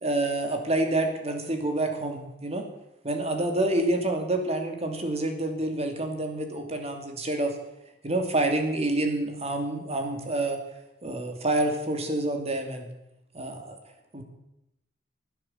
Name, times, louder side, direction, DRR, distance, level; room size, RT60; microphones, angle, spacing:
voice 1, 0.0-2.6 3.0-7.5 8.0-10.6 11.0-12.9 13.3-13.8 14.1-14.2, right 2 dB, 35° right, 4 dB, 2.7 m, -28 dB
16.0 x 9.8 x 8.0 m, 0.85 s
head